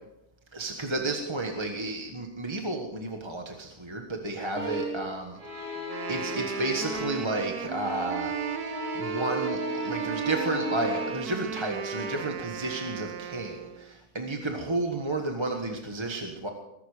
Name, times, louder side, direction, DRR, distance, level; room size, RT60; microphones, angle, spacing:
voice 1, 0.5-5.8 6.1-8.3 8.9-16.5, right 2 dB, 20° right, 2 dB, 1.4 m, -32 dB
sound 1, 4.5-5.1 5.4-7.3 7.6-11.4 11.9-12.2, right 1 dB, 65° right, 3.8 m, -35 dB
Wind instrument woodwind instrument, 5.8-13.9, right 9 dB, 85° right, 1.3 m, -36 dB
21.5 x 11.5 x 5.0 m, 0.86 s
omnidirectional pair, 1.6 m